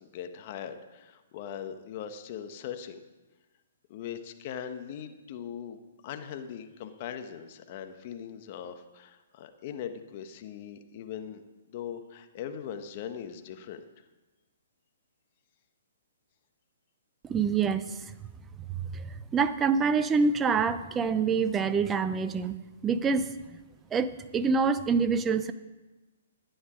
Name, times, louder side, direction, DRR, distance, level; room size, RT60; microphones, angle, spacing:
voice 1, 0.0-3.0 3.9-11.4 11.7-13.8, left 8 dB, 45° left, 8 dB, 1.2 m, -40 dB
voice 2, 17.2-18.0 18.9-22.6 22.8-23.3 23.9-25.5, right 5 dB, 15° right, 12 dB, 0.7 m, -26 dB
11.5 x 10.0 x 5.1 m, 1.2 s
hypercardioid pair, 135°, 0 cm